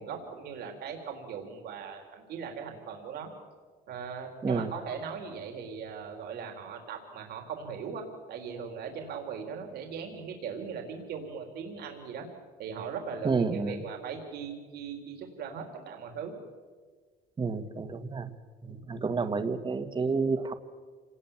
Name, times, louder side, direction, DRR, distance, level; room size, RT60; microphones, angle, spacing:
voice 1, 0.0-3.3 3.9-12.3 12.6-16.3, right 6 dB, 70° right, 3 dB, 4.0 m, -39 dB
voice 2, 13.2-13.8 17.4-18.3 18.6-20.5, right 4 dB, 30° right, 9 dB, 1.8 m, -30 dB
27.0 x 19.5 x 7.5 m, 1.5 s
cardioid pair, 110°, 17 cm